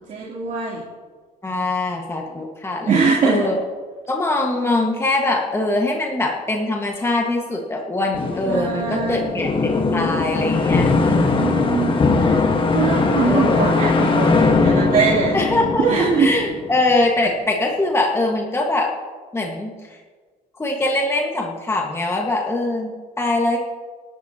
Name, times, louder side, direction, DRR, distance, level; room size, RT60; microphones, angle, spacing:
voice 1, 0.1-0.8 2.8-3.4 8.5-9.4 11.3-12.4 12.7-15.3 15.8-16.3, right 5 dB, 50° right, -6 dB, 3.4 m, -21 dB
voice 2, 1.4-3.6 4.1-11.6 13.2-13.7 15.3-18.9 19.3-19.7 20.6-23.6, left 2 dB, 15° left, 0 dB, 1.7 m, -22 dB
sound 1, 8.1-16.9, left 3 dB, 30° left, 1.6 m, -20 dB
27.0 x 11.5 x 3.0 m, 1.5 s
cardioid pair, 110°, 17 cm